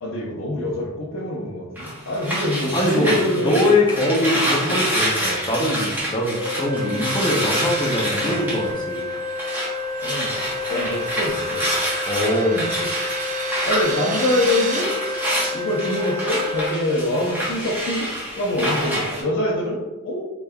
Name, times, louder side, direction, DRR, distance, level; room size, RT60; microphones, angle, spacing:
voice 1, 0.0-3.6 4.3-4.8 10.0-10.3 10.7-12.1 13.6-14.9 15.5-18.1 18.3-20.2, left 1 dB, 60° left, -8 dB, 0.8 m, -25 dB
sound 1, 1.8-9.7 10.0-19.2, equal, 10° right, 1.1 m, -27 dB
voice 2, 2.7-9.1 12.1-12.6, left 1 dB, 20° left, -3 dB, 0.7 m, -22 dB
Organ, 6.4-17.4, left 3 dB, 70° right, 1.1 m, -30 dB
sound 2, 7.3-14.8, right 5 dB, 35° right, 0.4 m, -35 dB
4.0 x 3.5 x 2.3 m, 1.1 s
head